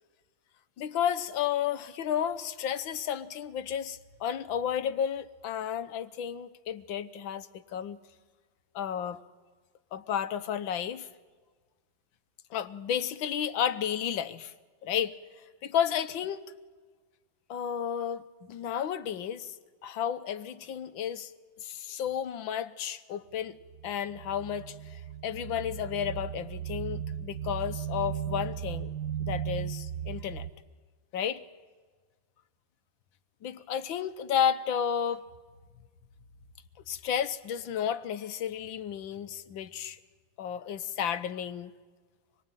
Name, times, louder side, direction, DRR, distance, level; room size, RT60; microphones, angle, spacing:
voice 1, 0.8-8.0 8.7-9.2 9.9-11.1 12.5-14.5 14.8-15.2 15.6-16.4 17.5-18.2 18.5-19.5 19.8-21.3 21.6-23.6 23.8-28.9 29.2-30.5 31.1-31.4 33.4-35.2 36.9-40.0 40.4-41.7, left 9 dB, 75° left, 1.7 m, -32 dB
sound 1, 23.6-30.5, right 9 dB, 55° right, 1.5 m, -36 dB
26.5 x 22.5 x 9.0 m
omnidirectional pair, 2.2 m